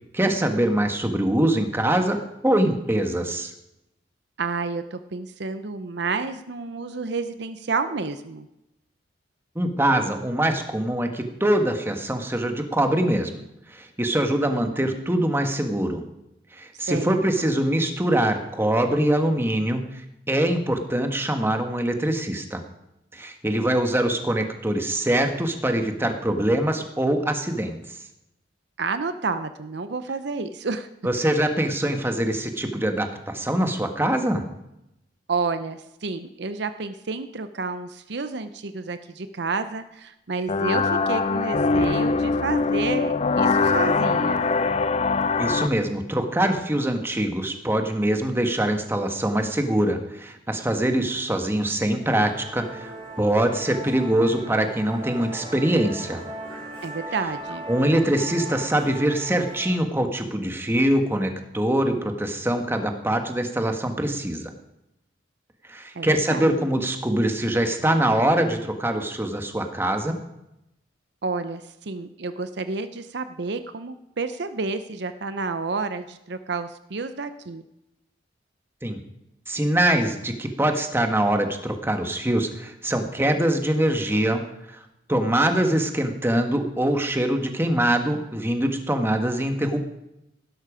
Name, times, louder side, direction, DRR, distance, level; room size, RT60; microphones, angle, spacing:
voice 1, 0.1-3.5 9.5-13.4 13.7-16.0 16.5-22.6 23.1-27.8 31.0-34.4 45.4-56.2 57.7-64.5 65.7-70.2 78.8-79.0 79.5-84.4 84.7-84.8 85.1-89.8, right 1 dB, 15° right, 5 dB, 1.4 m, -23 dB
voice 2, 4.4-8.5 14.7-14.8 16.9-17.2 28.8-30.9 35.3-44.5 56.8-57.6 65.9-66.6 71.2-77.6, right 4 dB, 65° right, 10 dB, 0.7 m, -30 dB
sound 1, 40.5-45.7, left 4 dB, 35° left, 0.5 m, -22 dB
Musical instrument, 52.0-59.8, right 1 dB, 30° right, 5.7 m, -38 dB
16.0 x 12.5 x 5.0 m, 0.87 s
head